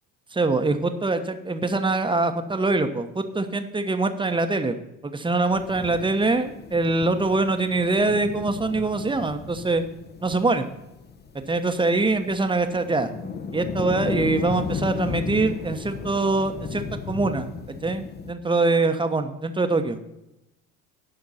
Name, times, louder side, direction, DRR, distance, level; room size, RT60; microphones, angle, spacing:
voice 1, 0.3-4.8 5.0-9.8 10.2-10.6 11.5-13.1 13.5-17.5 17.8-20.0, right 3 dB, 10° right, 8 dB, 1.1 m, -24 dB
sound 1, 5.5-18.3, left 5 dB, 20° left, 0.9 m, -35 dB
16.5 x 5.9 x 4.2 m, 0.88 s
hypercardioid pair, 70°, 44 cm